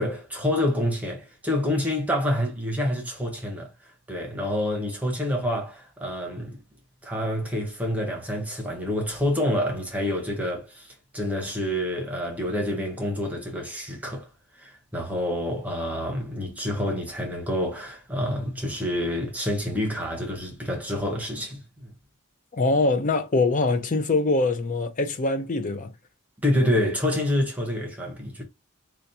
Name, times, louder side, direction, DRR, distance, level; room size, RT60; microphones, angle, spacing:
voice 1, 0.0-6.6 7.0-14.3 14.6-21.9 26.4-28.4, left 1 dB, 5° right, 0.9 m, -27 dB
voice 2, 22.5-25.9, left 3 dB, 35° left, 0.5 m, -23 dB
5.0 x 2.3 x 2.7 m
head